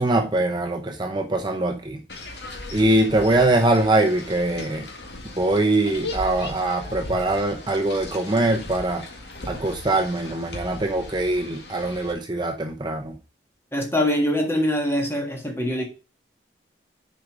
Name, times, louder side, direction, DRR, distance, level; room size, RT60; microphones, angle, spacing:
voice 1, 0.0-2.0 2.7-4.9 5.4-9.0 9.5-13.1, right 2 dB, 25° right, 0.7 m, -22 dB
sound 1, 2.1-12.1, left 2 dB, 65° left, 2.0 m, -37 dB
voice 2, 13.7-15.9, equal, 15° left, 1.6 m, -23 dB
6.9 x 5.2 x 6.0 m
head